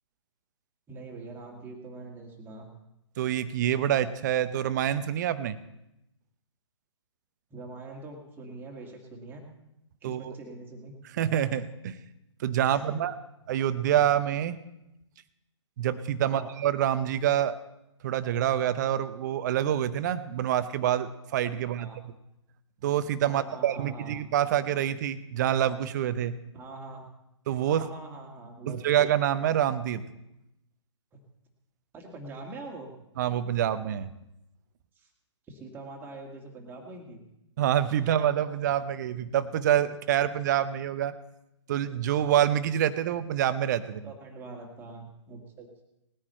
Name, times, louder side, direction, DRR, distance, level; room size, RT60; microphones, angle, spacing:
voice 1, 0.9-2.7 7.5-9.4 10.0-10.9 12.7-13.0 16.2-16.5 21.8-22.0 23.3-24.1 26.5-27.1 27.6-29.0 31.9-32.9 35.0-35.1 35.5-37.2 44.0-45.8, right 2 dB, 15° right, 1 dB, 2.1 m, -43 dB
voice 2, 3.2-5.6 10.0-10.3 11.2-12.0 12.4-13.1 13.5-14.6 15.8-17.5 18.0-21.9 22.8-26.4 27.5-27.9 28.7-30.0 33.2-34.1 37.6-41.1 41.7-44.0, right 10 dB, 40° right, 13 dB, 0.7 m, -26 dB
19.0 x 9.8 x 4.4 m, 0.87 s
figure-of-eight pair, 130°, 15 cm